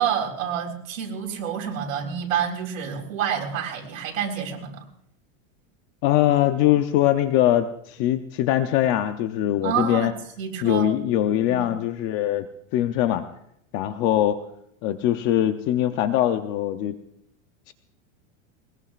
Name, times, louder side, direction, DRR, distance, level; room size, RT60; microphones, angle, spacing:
voice 1, 0.0-4.8 9.6-10.9 11.5-11.7, right 8 dB, 85° right, -1 dB, 4.1 m, -28 dB
voice 2, 6.0-10.1 10.6-12.5 12.7-13.2 13.7-14.4 14.8-17.0 17.7-17.8, left 12 dB, 30° left, 9 dB, 0.6 m, -22 dB
20.5 x 20.5 x 2.4 m, 0.75 s
supercardioid pair, 160°, 40 cm